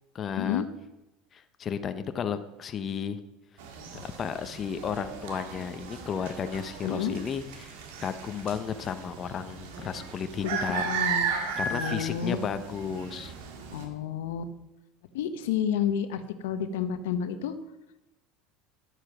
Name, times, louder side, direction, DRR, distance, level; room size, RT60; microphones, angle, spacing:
voice 1, 0.1-0.6 1.3-3.2 4.0-7.7 8.0-10.9 11.6-13.3, left 7 dB, 35° left, 10 dB, 0.8 m, -33 dB
sound 1, 3.6-13.9, right 5 dB, 80° right, 1.9 m, -35 dB
voice 2, 6.8-7.2 10.4-11.3 11.7-12.4 13.7-14.5 15.1-17.5, left 8 dB, 85° left, 11 dB, 0.9 m, -30 dB
11.0 x 7.9 x 5.9 m, 0.97 s
supercardioid pair, 110°, 0 cm